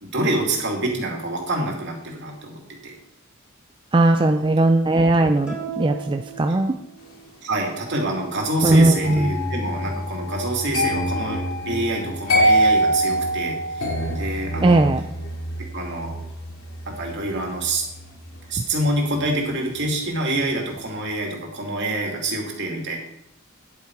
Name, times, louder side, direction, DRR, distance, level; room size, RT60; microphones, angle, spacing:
voice 1, 0.0-2.9 4.1-4.4 6.5-6.6 7.4-11.4 11.7-13.6 14.1-14.8 15.7-16.1 16.9-17.8 18.5-23.0, right 2 dB, 55° right, 0 dB, 2.6 m, -26 dB
voice 2, 3.9-6.7 8.6-9.3 14.6-15.0, right 2 dB, 25° right, 6 dB, 0.4 m, -18 dB
sound 1, 5.5-7.3, right 7 dB, 5° right, 2.3 m, -36 dB
sound 2, 9.0-20.0 20.3-20.7, equal, 75° left, 3.2 m, -25 dB
10.0 x 8.3 x 4.7 m, 0.77 s
head